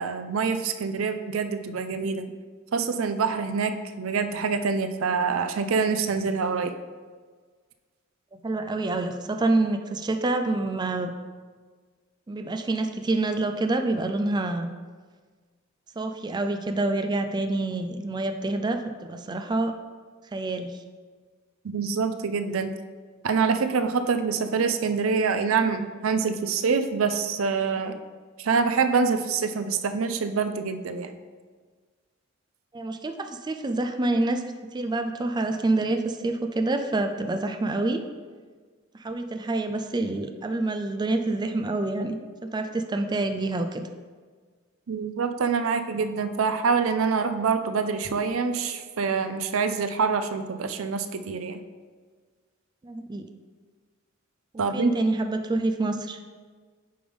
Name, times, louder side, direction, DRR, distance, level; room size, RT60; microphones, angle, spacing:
voice 1, 0.0-2.3 2.7-6.7 21.6-22.7 23.2-28.0 28.4-31.2 44.9-51.6 54.6-54.9, right 5 dB, 80° right, 9 dB, 0.5 m, -26 dB
voice 2, 8.3-11.1 12.3-14.7 16.0-19.7 20.3-20.8 32.7-34.4 34.7-38.0 39.0-42.2 42.4-43.8 52.8-53.2 54.5-56.2, right 2 dB, 20° right, 6 dB, 0.4 m, -27 dB
8.7 x 5.2 x 3.4 m, 1.5 s
head